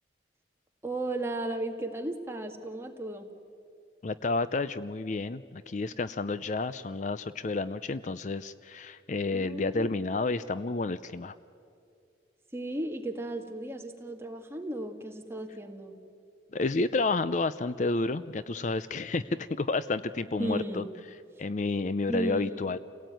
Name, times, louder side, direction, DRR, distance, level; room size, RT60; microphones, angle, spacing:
voice 1, 0.8-3.3 9.3-9.9 12.5-16.0 20.4-20.9 22.1-22.7, right 1 dB, 15° right, 3 dB, 1.8 m, -35 dB
voice 2, 4.0-11.3 16.5-20.8 21.4-22.8, left 3 dB, 45° left, 14 dB, 0.5 m, -30 dB
28.5 x 17.5 x 9.2 m, 2.4 s
head